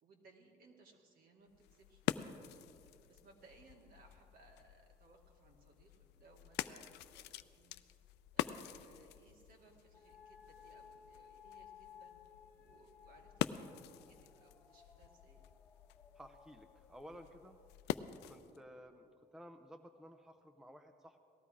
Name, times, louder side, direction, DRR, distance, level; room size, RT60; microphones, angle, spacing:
voice 1, 0.0-2.5 3.1-7.7 8.3-12.1 12.6-15.4, right 3 dB, 60° right, 1 dB, 2.3 m, -65 dB
sound 1, 1.5-18.6, left 13 dB, 85° left, 0.5 m, -46 dB
sound 2, 9.9-18.8, left 7 dB, 15° left, 1.9 m, -61 dB
voice 2, 16.1-17.6 18.2-21.2, equal, 5° right, 7 dB, 0.6 m, -55 dB
18.5 x 13.0 x 4.9 m, 2.7 s
cardioid pair, 110°, 17 cm